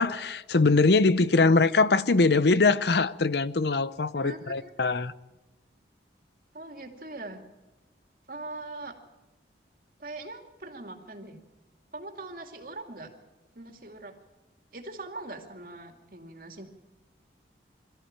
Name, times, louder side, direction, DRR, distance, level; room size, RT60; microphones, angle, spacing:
voice 1, 0.0-5.1, left 3 dB, 70° left, 0.7 m, -22 dB
voice 2, 4.1-4.7 6.5-7.4 8.3-8.9 10.0-11.4 11.9-13.1 13.5-14.1 14.7-16.6, right 2 dB, 50° right, 2.5 m, -41 dB
23.0 x 14.0 x 8.9 m
head